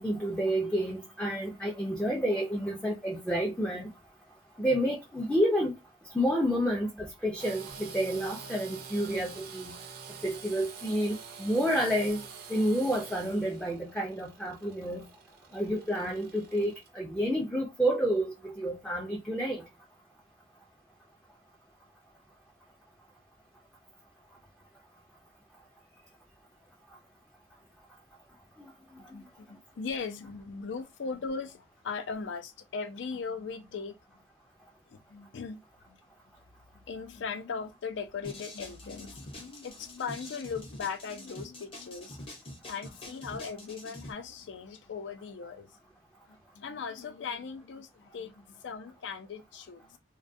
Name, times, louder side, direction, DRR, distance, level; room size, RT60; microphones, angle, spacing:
voice 1, 0.0-3.9 4.6-5.7 6.1-9.8 10.2-15.0 15.5-19.6 28.6-28.7 28.9-29.1, equal, 5° left, 0.3 m, -29 dB
Engine / Sawing, 7.4-16.9, right 6 dB, 55° right, 0.4 m, -46 dB
voice 2, 29.1-34.0 34.9-35.6 35.9-36.0 36.7-42.2 42.7-45.8 46.3-50.0, left 5 dB, 85° left, 0.4 m, -39 dB
sound 1, 38.2-44.1, left 1 dB, 30° left, 0.7 m, -45 dB
2.2 x 2.2 x 2.5 m
head